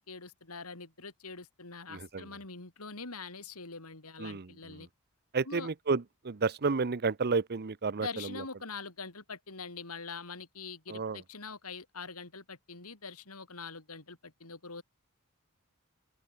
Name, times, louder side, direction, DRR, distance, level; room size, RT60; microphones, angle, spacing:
voice 1, 0.0-4.9 5.5-5.7 8.0-14.8, left 4 dB, 80° left, 3.9 m, -44 dB
voice 2, 1.9-2.3 4.2-4.9 5.3-8.4 10.9-11.2, right 4 dB, 45° right, 0.7 m, -32 dB
open air
head